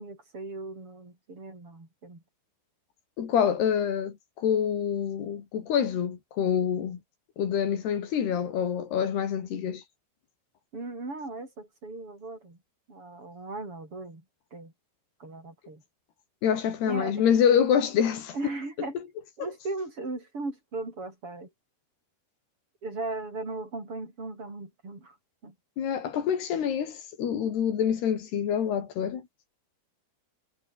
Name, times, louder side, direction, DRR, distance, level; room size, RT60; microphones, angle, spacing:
voice 1, 0.0-2.2 10.7-12.6 12.9-14.2 14.5-14.7 15.2-15.8 16.9-17.3 18.3-18.9 19.4-21.5 22.8-25.2 25.4-25.5, right 3 dB, 30° right, 8.3 m, -37 dB
voice 2, 3.2-7.0 7.4-9.8 16.4-18.3 25.8-29.2, left 8 dB, 65° left, 4.7 m, -26 dB
omnidirectional pair, 5.2 m